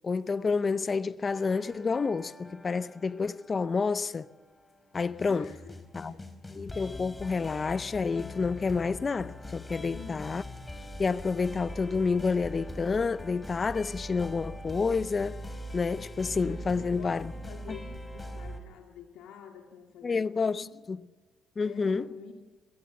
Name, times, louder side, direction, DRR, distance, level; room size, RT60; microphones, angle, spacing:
voice 1, 0.0-4.3 4.9-5.5 5.9-6.2 6.5-10.4 11.0-15.4 15.7-17.3 20.0-21.0 21.6-22.1, left 4 dB, 35° left, 0.6 m, -29 dB
sound 1, 1.3-18.6, left 1 dB, 20° left, 4.0 m, -43 dB
voice 2, 5.3-6.3 9.8-10.4 16.5-20.3 20.6-20.8 21.6-22.3, left 7 dB, 90° left, 2.1 m, -47 dB
25.5 x 18.5 x 7.0 m
cardioid pair, 85°, 0 cm